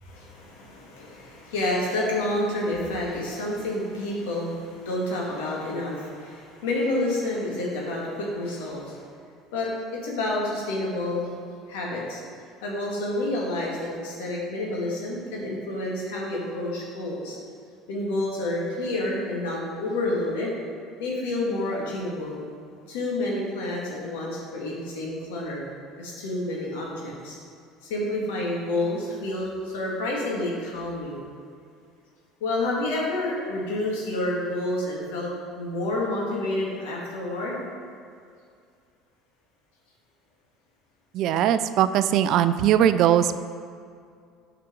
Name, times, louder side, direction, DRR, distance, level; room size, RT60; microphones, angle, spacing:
voice 1, 0.0-9.0 9.5-11.4 11.7-12.2 12.6-17.4 17.9-20.6 21.0-22.4 22.9-25.6 26.0-27.4 27.8-31.2 32.4-35.3 35.6-37.6, left 1 dB, 80° left, -3 dB, 1.9 m, -29 dB
voice 2, 41.1-43.4, right 10 dB, 60° right, 12 dB, 0.3 m, -20 dB
8.3 x 5.0 x 4.5 m, 2.3 s
hypercardioid pair, 80°, 0 cm